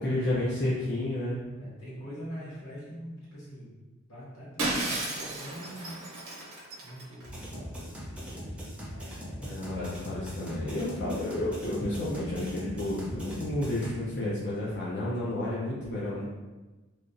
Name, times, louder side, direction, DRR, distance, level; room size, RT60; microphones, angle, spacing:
voice 1, 0.0-1.4 9.4-16.2, left 1 dB, 55° left, -8 dB, 0.6 m, -31 dB
voice 2, 1.6-3.7 4.1-6.0 6.3-6.4 6.8-9.9 16.1-16.2, equal, 90° left, -8 dB, 1.4 m, -44 dB
Shatter, 4.6-7.3, right 2 dB, 80° right, 0.8 m, -33 dB
sound 1, 7.2-13.9, equal, 5° right, 0.6 m, -41 dB
3.2 x 2.3 x 2.6 m, 1.2 s
head